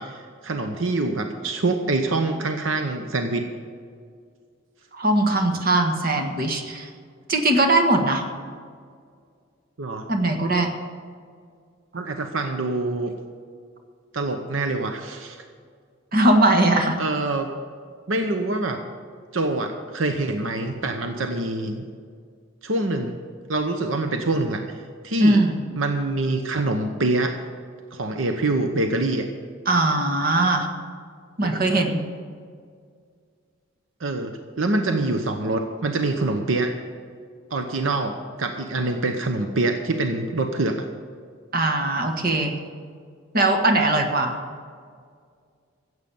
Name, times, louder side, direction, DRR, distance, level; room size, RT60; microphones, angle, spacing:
voice 1, 0.0-3.5 9.8-10.1 11.9-13.1 14.1-15.4 17.0-17.5 18.1-18.8 19.3-21.8 22.6-23.1 23.5-24.8 25.0-25.4 25.8-27.4 27.9-29.3 31.4-31.8 34.0-36.7 37.5-40.8, right 2 dB, 80° right, 6 dB, 0.9 m, -25 dB
voice 2, 4.9-6.9 7.3-8.3 10.1-10.7 16.1-17.0 25.2-25.6 29.6-30.7 31.4-32.0 41.5-42.5 43.3-44.3, right 2 dB, 50° right, 4 dB, 1.6 m, -20 dB
14.5 x 8.0 x 7.1 m, 2.1 s
head